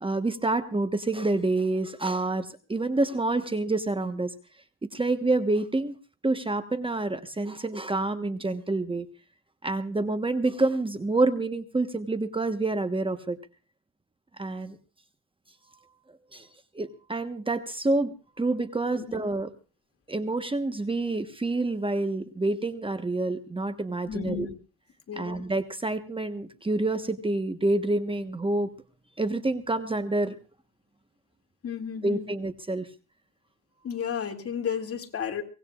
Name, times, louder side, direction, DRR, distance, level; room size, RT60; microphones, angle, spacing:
voice 1, 0.0-4.3 4.9-5.9 6.2-9.1 9.6-13.4 14.4-14.8 16.3-16.5 16.7-19.5 20.1-24.5 25.2-28.7 29.2-30.3 32.0-32.9, right 2 dB, 15° right, 9 dB, 1.2 m, -27 dB
voice 2, 24.1-24.5 25.1-25.4 31.6-32.3 33.8-35.4, left 8 dB, 50° left, 4 dB, 2.4 m, -33 dB
24.0 x 18.5 x 2.4 m, 0.34 s
cardioid pair, 90°, 30 cm